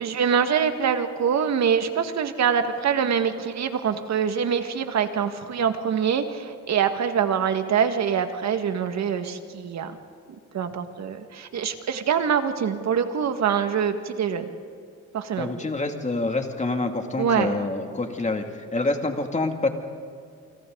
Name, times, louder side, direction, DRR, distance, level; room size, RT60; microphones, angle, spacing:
voice 1, 0.0-10.0 10.5-14.5 15.1-15.5 17.2-17.5, right 7 dB, 65° right, 7 dB, 1.8 m, -24 dB
voice 2, 15.4-19.7, left 2 dB, 25° left, 4 dB, 2.5 m, -27 dB
29.0 x 25.5 x 4.0 m, 2.4 s
cardioid pair, 90°, 30 cm